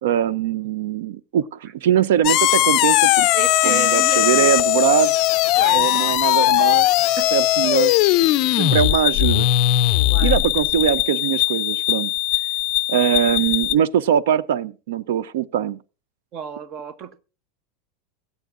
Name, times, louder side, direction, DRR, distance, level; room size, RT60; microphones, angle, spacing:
voice 1, 0.0-3.3 3.6-5.1 5.7-6.9 7.3-7.9 8.2-8.3 8.6-9.5 10.2-12.1 12.9-15.8, right 10 dB, 80° right, 0.5 m, -21 dB
sound 1, 2.2-13.7, left 16 dB, 35° left, 0.5 m, -19 dB
voice 2, 3.3-4.5 5.6-5.9 6.4-6.8 7.2-7.3 10.1-10.4 16.3-17.2, right 7 dB, 30° right, 0.8 m, -33 dB
24.0 x 8.3 x 2.5 m
supercardioid pair, 175°, 0 cm